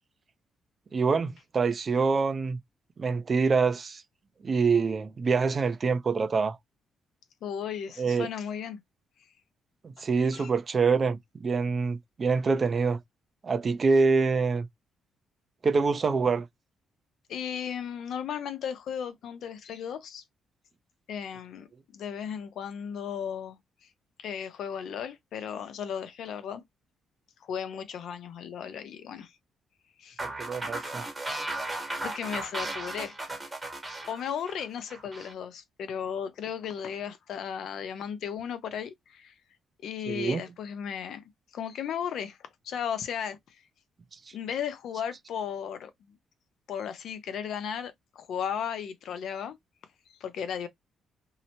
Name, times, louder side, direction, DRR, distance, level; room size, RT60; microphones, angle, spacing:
voice 1, 0.9-2.6 3.0-4.0 4.4-6.6 8.0-8.3 9.8-13.0 13.4-14.7 15.6-16.5 30.2-31.0 40.1-40.4, right 4 dB, 40° right, 0.5 m, -25 dB
voice 2, 7.4-8.8 10.0-10.1 10.3-10.5 17.3-20.2 21.1-23.6 24.2-26.6 27.4-29.3 30.0-30.2 32.0-33.2 34.1-39.3 39.8-41.2 41.5-43.6 44.3-45.9 46.7-49.6 50.1-50.7, left 8 dB, 70° left, 0.5 m, -35 dB
sound 1, 30.2-35.3, right 2 dB, 20° right, 0.9 m, -36 dB
2.7 x 2.1 x 2.8 m
cardioid pair, 90°, 0 cm